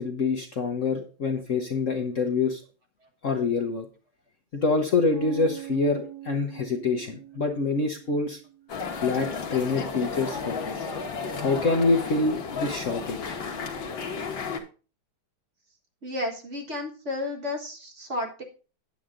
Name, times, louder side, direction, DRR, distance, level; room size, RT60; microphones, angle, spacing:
voice 1, 0.0-2.6 3.2-3.9 4.5-8.4 9.0-10.9 11.4-13.4, left 3 dB, 45° left, 3 dB, 1.2 m, -26 dB
sound 1, 5.1-9.0, right 12 dB, 65° right, 2.7 m, -42 dB
sound 2, 8.7-14.6, left 5 dB, 70° left, 2.1 m, -33 dB
voice 2, 16.0-18.4, left 2 dB, 40° right, 2 dB, 1.8 m, -32 dB
9.4 x 8.4 x 3.7 m, 0.36 s
omnidirectional pair, 2.2 m